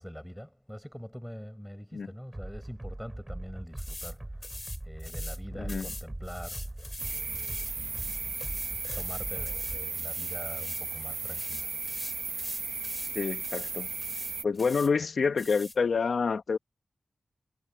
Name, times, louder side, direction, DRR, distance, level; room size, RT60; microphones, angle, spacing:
voice 1, 0.0-8.2 8.9-11.7, equal, ahead, 6.7 m, -44 dB
sound 1, 2.3-9.8, right 1 dB, 15° right, 6.4 m, -41 dB
sound 2, 3.8-4.2 4.4-5.4 5.7-10.9 11.2-13.2 13.4-13.7 14.0-14.9 15.4-15.8, left 2 dB, 25° left, 6.4 m, -43 dB
voice 2, 5.6-5.9 13.1-13.9 14.4-16.6, left 5 dB, 70° left, 1.5 m, -28 dB
sound 3, 7.0-14.4, right 4 dB, 60° right, 1.1 m, -35 dB
wide cardioid pair, 100°, 0 cm